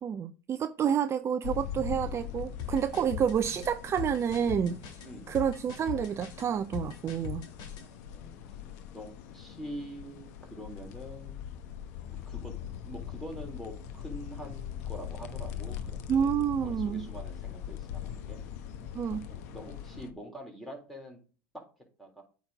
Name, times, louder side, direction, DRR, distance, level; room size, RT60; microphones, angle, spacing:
voice 1, 0.0-4.8 5.3-7.4 16.1-17.1 18.9-19.3, right 8 dB, 30° right, 0.5 m, -29 dB
sound 1, 1.4-20.1, left 9 dB, 70° left, 1.1 m, -41 dB
sound 2, 2.6-7.9, left 9 dB, 50° left, 2.5 m, -40 dB
voice 2, 5.0-5.4 8.1-8.6 8.9-11.5 12.0-12.5 12.8-16.3 16.6-18.4 19.3-21.2 21.5-21.6 22.0-22.2, equal, ahead, 3.6 m, -45 dB
8.7 x 4.1 x 4.9 m
hypercardioid pair, 95°, 9 cm